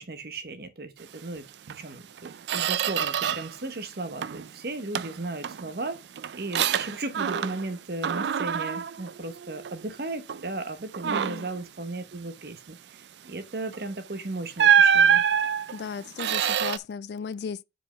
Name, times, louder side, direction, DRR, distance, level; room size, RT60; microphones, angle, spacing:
voice 1, 0.0-6.0 6.3-15.2, right 2 dB, 60° right, 1.0 m, -36 dB
Squeak, 1.7-1.8 2.2-3.6 3.9-4.5 4.9-7.7 8.0-9.9 10.3-10.5 10.9-11.6 13.7-13.9 14.6-16.8, right 8 dB, 75° right, 0.4 m, -25 dB
voice 2, 11.0-11.5 15.7-17.6, left 6 dB, 65° left, 0.3 m, -36 dB
5.1 x 4.6 x 5.7 m
head